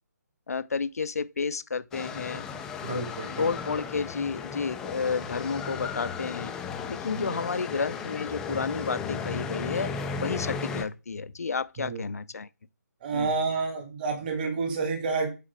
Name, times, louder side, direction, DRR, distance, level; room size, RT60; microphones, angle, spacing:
voice 1, 0.5-2.4 2.9-3.0 3.4-6.5 6.9-9.9 10.2-12.5 13.1-13.3, left 5 dB, 55° left, 0.6 m, -31 dB
sound 1, 1.9-10.8, left 6 dB, 5° left, 0.4 m, -35 dB
voice 2, 2.8-3.5 7.2-7.4 11.8-12.1 13.0-15.3, right 4 dB, 30° right, 1.8 m, -30 dB
8.2 x 4.8 x 4.5 m
figure-of-eight pair, 145°, 10 cm